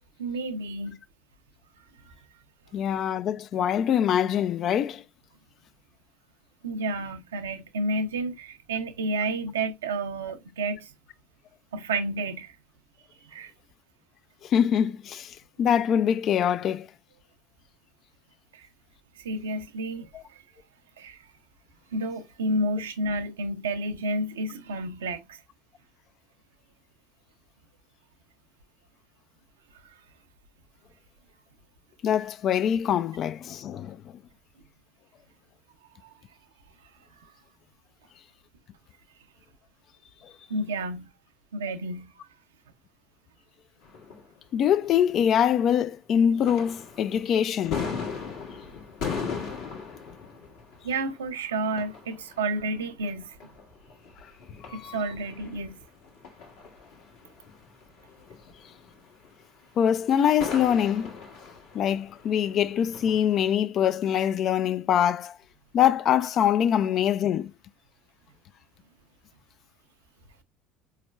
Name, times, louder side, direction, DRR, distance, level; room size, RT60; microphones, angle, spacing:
voice 1, 0.2-1.0 2.1-2.2 6.6-10.9 11.7-12.6 13.2-13.5 18.5-18.7 19.2-20.4 21.0-21.3 21.9-25.4 29.8-29.9 36.0-36.1 37.2-37.3 40.5-41.1 41.5-42.1 50.8-53.4 54.7-55.8, right 2 dB, 80° right, 0.6 m, -31 dB
voice 2, 2.7-5.0 14.4-16.9 32.0-34.0 44.5-47.8 54.7-55.0 59.8-61.1 61.7-65.3 65.7-67.5, left 9 dB, 50° left, 0.3 m, -24 dB
sound 1, 43.8-45.9 46.2-63.5, left 5 dB, 65° left, 1.4 m, -39 dB
4.3 x 3.2 x 2.3 m
hypercardioid pair, 65°, 0 cm